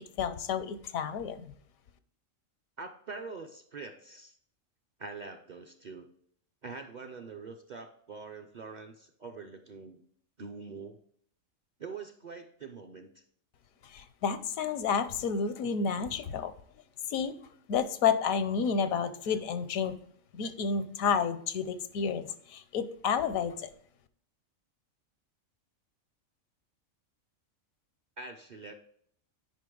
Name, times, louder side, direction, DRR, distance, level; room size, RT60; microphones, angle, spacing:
voice 1, 0.2-1.5 13.9-16.5 17.1-17.3 17.7-20.0 20.3-23.7, left 6 dB, 85° left, 12 dB, 1.1 m, -30 dB
voice 2, 2.8-4.4 5.0-6.1 6.6-10.0 10.4-11.0 11.8-13.2 28.2-28.7, right 4 dB, 50° right, 4 dB, 0.5 m, -44 dB
9.4 x 5.3 x 3.8 m, 0.63 s
omnidirectional pair, 1.4 m